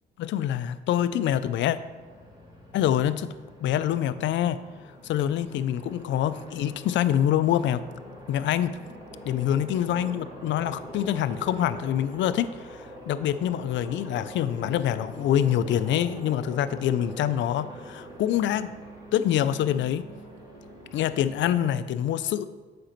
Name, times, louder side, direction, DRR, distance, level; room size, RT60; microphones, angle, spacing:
voice 1, 0.2-1.8 2.7-3.3 3.6-4.6 5.0-7.8 8.3-8.7 9.3-18.7 19.1-20.1 20.9-22.4, left 10 dB, 70° left, 14 dB, 0.4 m, -25 dB
Aircraft, 1.7-21.6, equal, 20° right, 2.1 m, -44 dB
7.5 x 5.1 x 4.5 m, 1.3 s
cardioid pair, 90°, 20 cm